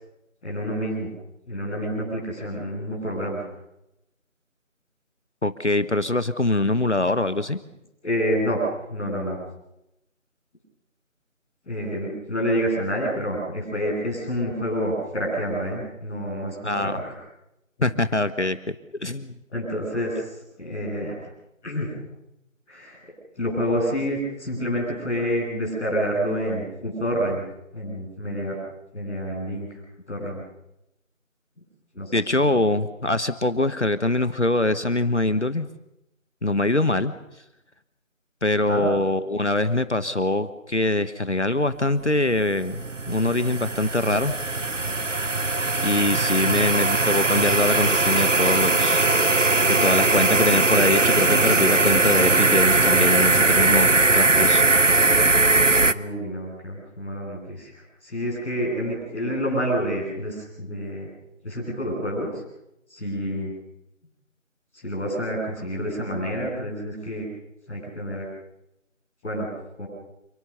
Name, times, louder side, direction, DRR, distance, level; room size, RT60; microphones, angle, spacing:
voice 1, 0.4-1.1 1.4-3.5 8.0-9.4 11.6-17.2 19.5-20.3 20.6-21.2 21.6-21.9 22.7-23.0 23.4-27.4 27.7-28.6 28.9-29.8 30.1-30.4 31.9-32.6 38.7-38.8 46.4-46.6 55.9-61.1 61.4-62.4 62.9-63.5 64.8-67.2 67.7-68.2 69.2-69.5 69.8-69.9, equal, ahead, -21 dB, 7.7 m, -28 dB
voice 2, 5.4-7.6 16.6-17.0 17.8-19.4 32.1-35.7 36.4-37.1 38.4-44.3 45.8-49.1 49.7-54.6, left 2 dB, 55° left, 12 dB, 1.4 m, -23 dB
sound 1, 42.1-55.9, right 3 dB, 65° right, 1.2 m, -20 dB
28.5 x 21.0 x 7.0 m, 0.87 s
figure-of-eight pair, 180°, 40 cm